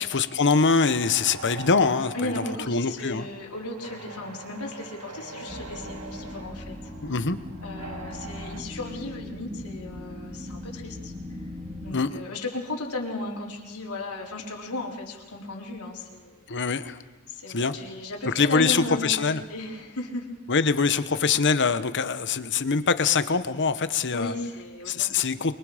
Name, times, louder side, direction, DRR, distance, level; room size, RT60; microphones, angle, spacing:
voice 1, 0.0-3.3 7.0-7.4 11.9-12.2 16.5-17.0 17.5-17.7 18.3-19.4 20.5-24.3 24.8-25.5, left 5 dB, 55° left, 12 dB, 1.1 m, -24 dB
sound 1, 0.8-8.6, right 4 dB, 85° right, 2.1 m, -43 dB
voice 2, 2.1-6.7 7.1-7.2 7.6-11.1 11.8-16.4 17.3-20.3 24.1-25.1, left 2 dB, 85° left, -2 dB, 4.1 m, -35 dB
sound 2, 5.5-11.9, left 1 dB, 20° right, 2.3 m, -39 dB
29.0 x 23.0 x 5.1 m, 1.2 s
head